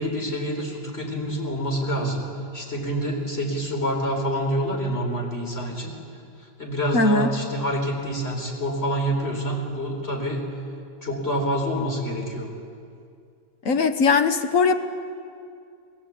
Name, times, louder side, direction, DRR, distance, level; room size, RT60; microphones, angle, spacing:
voice 1, 0.0-2.2 2.5-5.9 6.6-10.4 11.0-12.5, equal, 35° left, 1 dB, 4.5 m, -27 dB
voice 2, 6.9-7.3 13.6-14.7, left 4 dB, 50° left, 8 dB, 1.6 m, -19 dB
28.0 x 20.0 x 8.6 m, 2.4 s
omnidirectional pair, 1.9 m